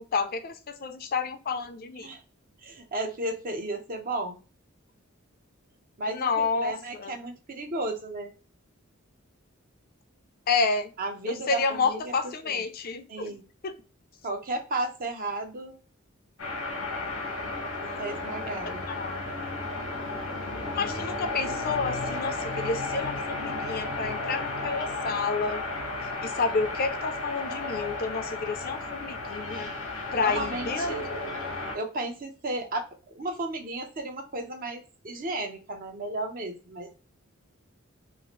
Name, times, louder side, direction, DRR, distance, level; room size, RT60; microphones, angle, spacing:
voice 1, 0.1-2.1 6.1-7.1 10.5-10.9 11.3-13.4 13.6-13.8 19.0-19.2 20.7-25.6 26.0-29.7 30.1-31.0, left 4 dB, 45° left, 9 dB, 0.5 m, -30 dB
voice 2, 2.6-4.4 6.0-8.3 11.0-12.6 13.1-13.4 14.2-15.8 17.8-18.8 30.2-31.0 31.7-37.0, right 2 dB, 45° right, 3 dB, 0.7 m, -34 dB
sound 1, 16.4-31.8, left 2 dB, 90° left, 1.0 m, -33 dB
2.8 x 2.5 x 3.0 m, 0.35 s
head